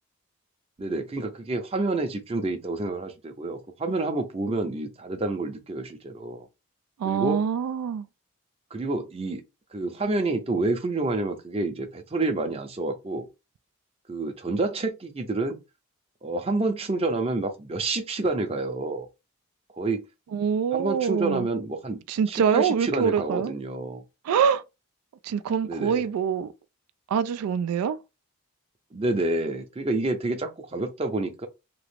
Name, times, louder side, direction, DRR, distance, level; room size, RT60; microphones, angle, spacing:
voice 1, 0.8-6.5 7.0-7.4 8.7-9.4 9.7-13.3 14.1-15.6 16.2-19.1 19.7-20.0 20.7-22.0 22.3-24.0 25.6-26.1 28.9-31.5, right 2 dB, 25° right, 0.5 m, -28 dB
voice 2, 7.0-8.1 20.3-21.5 22.1-23.5 24.2-24.6 25.2-26.5 27.1-28.0, right 7 dB, 85° right, 0.3 m, -25 dB
2.9 x 2.4 x 3.3 m
head